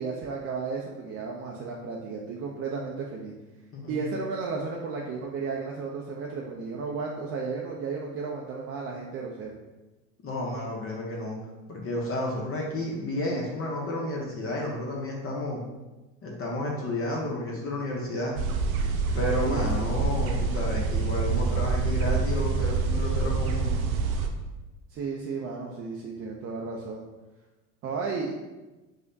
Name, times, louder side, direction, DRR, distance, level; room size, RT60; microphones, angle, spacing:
voice 1, 0.0-3.3 3.9-9.5 19.4-19.9 24.9-27.0 27.8-28.3, right 4 dB, 35° right, -2 dB, 0.4 m, -33 dB
voice 2, 3.7-4.1 10.2-11.4 11.7-15.6 16.2-18.4 19.1-23.7, left 1 dB, 30° left, -2 dB, 0.7 m, -31 dB
sound 1, 18.3-24.3, right 4 dB, 85° right, 0.6 m, -26 dB
4.8 x 2.1 x 2.6 m, 1.1 s
hypercardioid pair, 85°, 42 cm